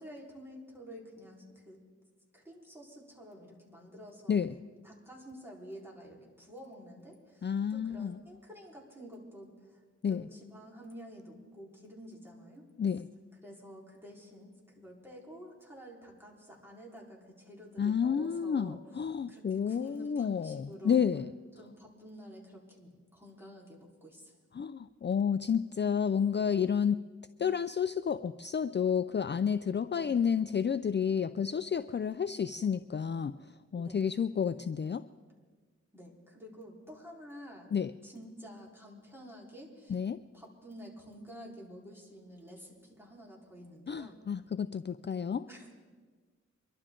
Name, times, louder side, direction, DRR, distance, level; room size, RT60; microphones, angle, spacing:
voice 1, 0.0-1.8 2.3-12.6 13.4-18.8 19.3-21.0 21.6-24.3 29.9-30.2 33.7-34.0 35.9-37.7 38.0-40.0 40.3-44.2 45.5-45.7, equal, 10° right, -4 dB, 4.1 m, -50 dB
voice 2, 7.4-8.2 10.0-10.3 12.8-13.1 17.8-21.3 24.5-27.0 27.4-33.3 33.7-35.0 37.7-37.9 39.9-40.2 43.9-45.5, left 7 dB, 40° left, 13 dB, 0.4 m, -30 dB
24.5 x 12.0 x 3.8 m, 1.5 s
wide cardioid pair, 55°, 29 cm